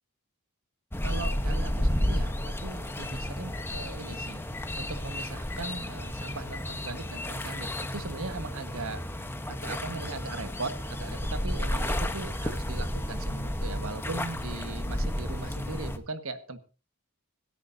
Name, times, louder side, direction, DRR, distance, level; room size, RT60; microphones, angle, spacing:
sound 1, 0.9-16.0, left 1 dB, 10° left, 1.0 m, -32 dB
voice 1, 1.0-4.4 4.8-9.0 9.5-16.6, right 3 dB, 70° right, 8 dB, 1.6 m, -39 dB
25.5 x 10.5 x 2.7 m, 0.33 s
head